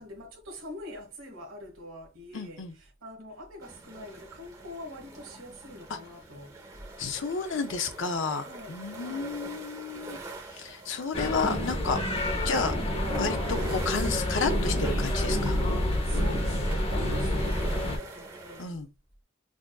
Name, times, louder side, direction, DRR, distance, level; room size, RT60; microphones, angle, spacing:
voice 1, 0.0-6.5 7.5-7.9 8.4-9.4 15.6-15.7 16.0-18.8, left 1 dB, 80° right, 1.3 m, -45 dB
voice 2, 2.3-2.7 5.9-6.0 7.0-10.2 10.6-12.7 13.2-15.6 18.6-18.9, left 4 dB, 65° left, 0.5 m, -31 dB
sound 1, 3.6-18.6, right 2 dB, 15° right, 0.8 m, -45 dB
sound 2, 11.1-18.0, left 1 dB, 30° left, 0.8 m, -28 dB
6.1 x 2.5 x 2.3 m
head